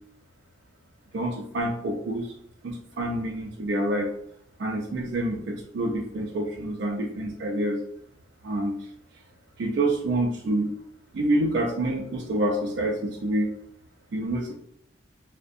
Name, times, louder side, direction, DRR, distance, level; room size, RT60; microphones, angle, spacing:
voice 1, 1.1-2.3 2.6-4.1 4.6-7.8 8.4-8.8 9.6-10.7 11.1-13.5 14.1-14.5, right 1 dB, 65° right, 0 dB, 0.4 m, -27 dB
2.5 x 2.0 x 2.4 m, 0.70 s
head